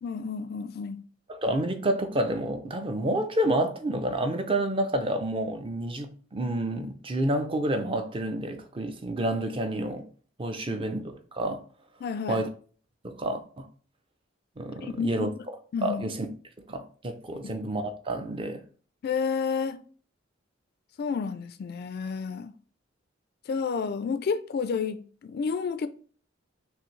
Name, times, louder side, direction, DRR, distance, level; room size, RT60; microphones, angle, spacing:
voice 1, 0.0-1.0 10.6-10.8 12.0-12.4 14.8-15.5 15.7-16.1 17.4-17.6 19.0-19.8 21.0-22.6 23.5-25.9, left 5 dB, 55° left, 0.3 m, -31 dB
voice 2, 1.3-10.1 10.4-11.6 12.3-12.5 13.0-13.7 14.6-15.3 15.8-16.3 16.7-18.6, right 1 dB, 25° right, 0.5 m, -29 dB
6.0 x 2.6 x 3.1 m
head